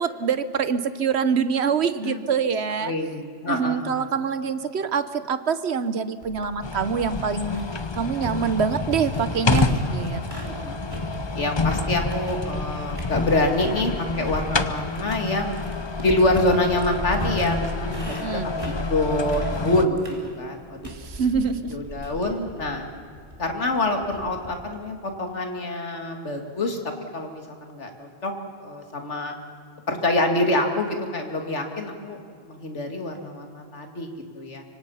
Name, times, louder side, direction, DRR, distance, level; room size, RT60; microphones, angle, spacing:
voice 1, 0.0-2.9 3.5-7.7 7.9-10.7 18.2-18.5 20.8-21.7, right 6 dB, 65° right, 13 dB, 1.3 m, -25 dB
voice 2, 2.8-4.1 10.5-10.8 11.4-15.5 16.0-20.9 21.7-22.9 23.4-26.8 27.1-28.3 28.6-29.4 29.9-32.2 32.5-34.6, left 2 dB, 80° left, 4 dB, 2.7 m, -26 dB
sound 1, 6.2-10.6 10.9-12.7 13.0-13.8 14.3-24.7, right 1 dB, 30° right, 3.1 m, -37 dB
sound 2, 6.6-19.9, left 3 dB, 25° left, 0.8 m, -28 dB
25.5 x 24.5 x 5.7 m, 2.2 s
omnidirectional pair, 1.2 m